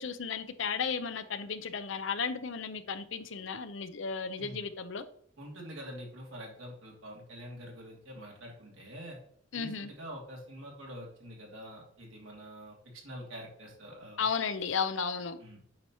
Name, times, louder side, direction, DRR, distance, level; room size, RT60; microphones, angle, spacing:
voice 1, 0.0-5.0 9.5-9.9 14.2-15.4, left 5 dB, 70° left, 0.6 m, -34 dB
voice 2, 5.4-9.2 9.5-14.2 15.4-15.6, equal, 80° right, 2.7 m, -46 dB
8.8 x 5.5 x 3.0 m
head